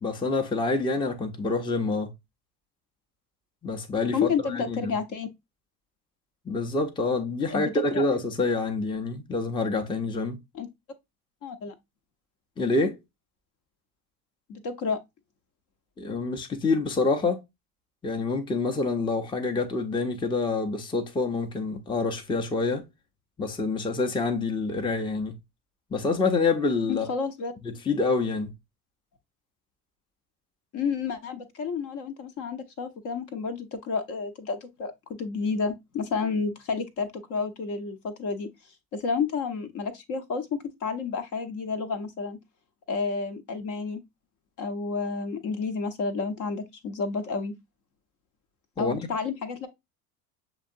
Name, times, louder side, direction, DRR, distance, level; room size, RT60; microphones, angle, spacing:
voice 1, 0.0-2.1 3.6-4.9 6.5-10.4 12.6-13.0 16.0-17.4 18.0-22.8 23.4-25.4 25.9-27.1 27.6-28.5 48.8-49.1, left 3 dB, 10° left, 0.7 m, -27 dB
voice 2, 4.1-5.3 7.5-8.1 10.5-10.7 11.4-11.7 14.5-15.0 26.9-27.5 30.7-38.5 38.9-42.4 42.9-44.0 44.6-47.6 48.8-49.7, left 5 dB, 40° left, 0.9 m, -30 dB
6.7 x 2.9 x 2.6 m
figure-of-eight pair, 65°, 45 cm